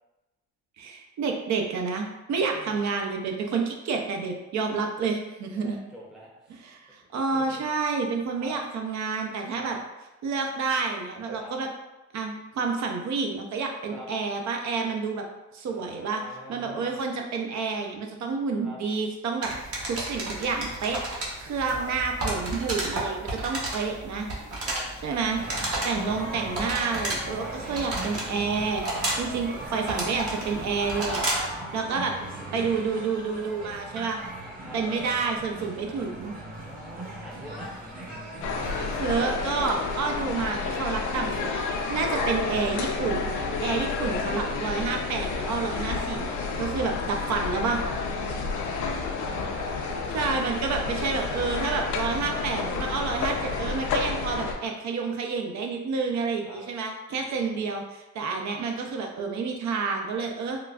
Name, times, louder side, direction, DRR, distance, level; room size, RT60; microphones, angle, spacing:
voice 1, 0.8-5.8 6.6-9.8 10.2-11.7 12.1-15.2 15.5-16.2 16.5-21.0 21.4-24.3 25.0-25.4 25.8-28.9 29.2-31.2 31.7-32.1 32.5-34.2 34.7-36.3 38.7-41.6 41.9-43.3 43.6-47.8 50.1-60.6, right 4 dB, 65° right, 2 dB, 0.6 m, -29 dB
voice 2, 2.5-2.9 5.5-6.6 7.0-7.6 8.4-8.6 9.5-9.8 11.4-11.5 13.9-14.1 15.7-17.0 18.6-18.8 21.8-21.9 24.6-24.9 25.9-26.1 29.0-29.2 31.6-32.6 34.6-34.8 36.6-37.7 41.3-41.5 42.1-42.3 46.7-46.9 48.2-49.6 53.4-53.6 56.5-56.6 57.2-57.6, right 1 dB, ahead, -4 dB, 0.6 m, -46 dB
sound 1, 19.4-31.6, right 1 dB, 50° right, 1.0 m, -33 dB
sound 2, 25.4-39.0, right 1 dB, 30° right, 0.9 m, -38 dB
sound 3, 38.4-54.6, left 4 dB, 75° left, 0.5 m, -30 dB
3.8 x 2.3 x 2.3 m, 1.0 s
cardioid pair, 90°, 30 cm